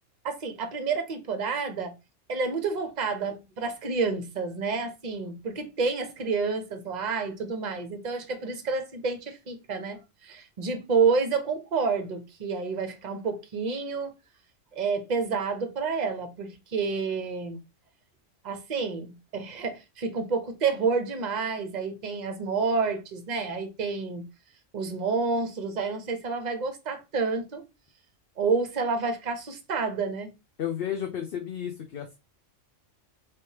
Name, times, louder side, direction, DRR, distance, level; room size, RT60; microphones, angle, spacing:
voice 1, 0.2-1.9 2.3-14.1 14.7-17.6 18.4-24.3 24.7-27.6 28.4-30.3, right 4 dB, 40° right, 0.7 m, -29 dB
voice 2, 30.6-32.2, left 9 dB, 60° left, 0.7 m, -32 dB
3.4 x 3.1 x 2.8 m
omnidirectional pair, 1.3 m